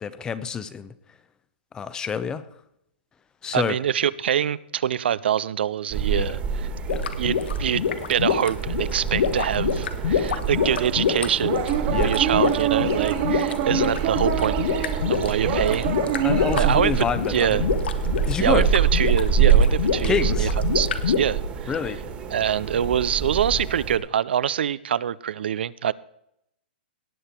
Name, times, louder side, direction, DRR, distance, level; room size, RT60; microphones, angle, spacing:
voice 1, 0.0-0.9 1.7-2.4 3.4-3.8 6.2-6.4 6.9-7.0 11.9-12.1 16.2-17.6 18.3-18.7 20.0-20.6 21.7-22.0, left 6 dB, 15° left, 0.6 m, -27 dB
voice 2, 3.5-6.7 7.2-7.8 8.1-11.7 12.0-14.6 15.1-15.9 16.6-17.7 18.4-20.5 20.7-21.7 22.3-25.9, right 9 dB, 75° right, 0.5 m, -25 dB
sound 1, 5.9-24.0, right 6 dB, 20° right, 1.6 m, -26 dB
sound 2, 6.9-21.2, left 7 dB, 80° left, 1.3 m, -26 dB
sound 3, 10.6-16.7, right 10 dB, 40° right, 1.5 m, -27 dB
18.0 x 6.9 x 4.4 m
hypercardioid pair, 150°, 6 cm